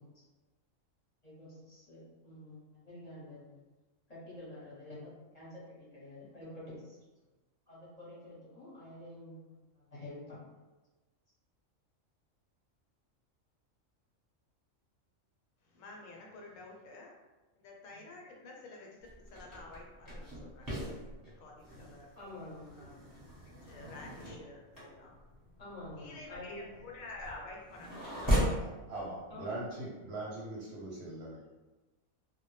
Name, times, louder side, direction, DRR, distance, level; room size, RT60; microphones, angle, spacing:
voice 1, 1.2-3.6 4.1-5.6 5.9-7.0 7.7-9.4 9.8-10.4 22.2-22.8 25.6-26.6 29.3-29.6, left 1 dB, 35° left, -8 dB, 0.8 m, -48 dB
voice 2, 15.6-17.1 17.6-18.9 19.3-20.9 21.2-22.1 22.7-23.0 23.6-25.2 26.0-28.4, left 2 dB, 80° left, -1 dB, 1.0 m, -50 dB
sound 1, 19.0-28.7, equal, 20° right, 0.8 m, -37 dB
voice 3, 28.6-31.5, right 2 dB, 65° right, -5 dB, 0.8 m, -41 dB
2.2 x 2.0 x 3.1 m, 1.2 s
omnidirectional pair, 1.4 m